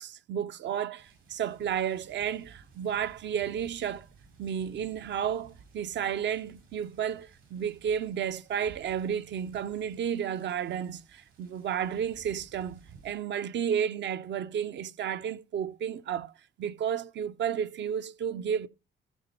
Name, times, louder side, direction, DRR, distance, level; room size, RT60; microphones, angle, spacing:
voice 1, 0.0-4.0 4.4-16.3 16.6-18.7, right 8 dB, 65° right, 0.6 m, -32 dB
sound 1, 1.0-13.1, right 5 dB, 80° right, 6.1 m, -57 dB
15.0 x 5.2 x 4.4 m
cardioid pair, 90°, 20 cm